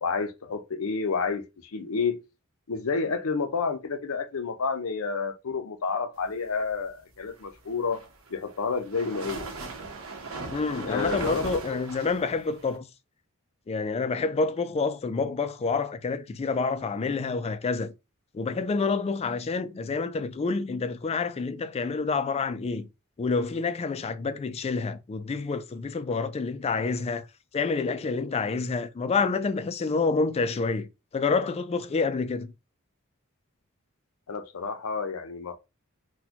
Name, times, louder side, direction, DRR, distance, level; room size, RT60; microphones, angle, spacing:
voice 1, 0.0-2.2 2.7-8.0 8.3-9.4 10.9-11.6 34.3-35.5, left 5 dB, 80° left, 0.6 m, -30 dB
sound 1, 7.7-12.8, right 3 dB, 75° right, 1.0 m, -38 dB
voice 2, 10.5-12.9 13.7-17.9 18.3-22.9 23.2-27.2 27.5-30.9 31.1-32.5, left 4 dB, 30° left, 0.3 m, -28 dB
4.1 x 2.2 x 2.8 m
head